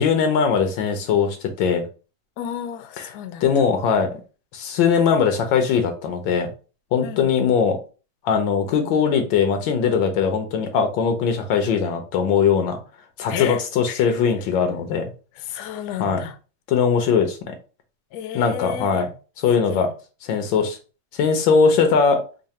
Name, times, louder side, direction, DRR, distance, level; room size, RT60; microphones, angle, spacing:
voice 1, 0.0-1.8 3.0-3.1 3.4-4.1 4.5-6.5 6.9-7.8 8.2-12.8 13.2-15.1 16.0-16.2 16.7-17.6 18.3-19.1 19.4-19.9 20.3-20.8 21.1-22.2, left 6 dB, 90° left, 1.5 m, -20 dB
voice 2, 2.4-3.4 7.0-7.3 13.3-13.6 13.9-14.1 15.4-16.3 18.1-19.1 19.7-19.9, left 9 dB, 70° left, 1.0 m, -32 dB
3.8 x 2.1 x 4.1 m
omnidirectional pair, 2.0 m